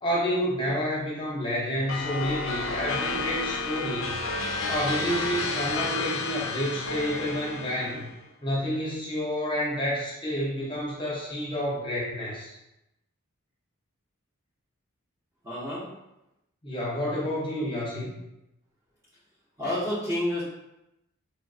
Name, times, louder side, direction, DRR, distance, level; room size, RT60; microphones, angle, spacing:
voice 1, 0.0-4.2 4.7-8.1 8.4-12.5 16.6-18.2, equal, 20° left, -5 dB, 0.7 m, -29 dB
sound 1, 1.9-8.1, left 3 dB, 60° left, 0.4 m, -31 dB
voice 2, 15.4-15.9 19.6-20.4, left 1 dB, 15° right, -8 dB, 0.6 m, -29 dB
3.2 x 2.5 x 2.3 m, 0.88 s
head